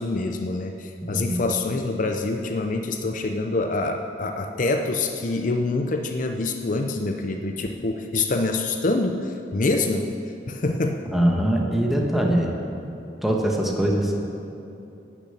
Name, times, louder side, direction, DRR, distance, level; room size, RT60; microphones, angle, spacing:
voice 1, 0.0-10.1 10.5-11.1, left 3 dB, 45° left, 5 dB, 0.6 m, -26 dB
voice 2, 1.0-1.5 11.0-12.5 13.2-14.2, right 1 dB, ahead, -1 dB, 1.2 m, -22 dB
11.5 x 7.0 x 8.2 m, 2.8 s
head